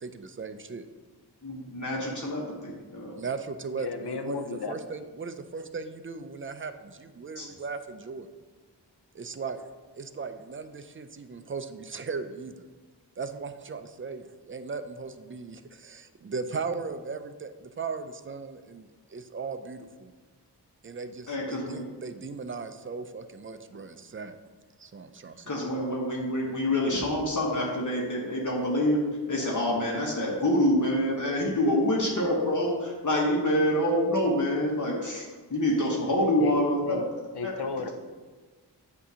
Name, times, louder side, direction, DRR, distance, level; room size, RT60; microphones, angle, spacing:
voice 1, 0.0-0.9 3.1-8.3 9.1-9.6 10.0-12.7 13.2-20.1 20.8-24.4 24.8-25.6, right 4 dB, 30° right, 9 dB, 0.4 m, -37 dB
voice 2, 1.4-3.1 7.3-7.5 21.3-21.9 25.5-29.0 29.3-37.0 37.4-37.5, left 1 dB, 45° left, -3 dB, 1.2 m, -26 dB
voice 3, 3.8-4.7 36.4-36.6 36.9-37.0 37.4-37.9, left 5 dB, 70° left, 7 dB, 0.7 m, -34 dB
8.2 x 2.8 x 6.1 m, 1.3 s
wide cardioid pair, 95°, 42 cm